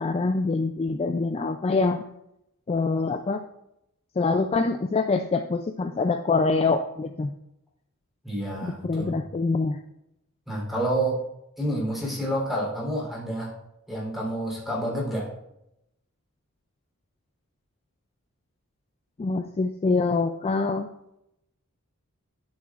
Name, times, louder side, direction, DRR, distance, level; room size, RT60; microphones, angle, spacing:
voice 1, 0.0-2.0 2.7-3.4 4.2-7.3 8.6-9.8 19.2-20.9, left 3 dB, 25° left, 6 dB, 0.3 m, -25 dB
voice 2, 8.2-9.2 10.5-11.2 11.6-13.5 13.9-15.3, right 1 dB, ahead, -5 dB, 3.4 m, -29 dB
11.5 x 7.3 x 2.4 m, 0.83 s
head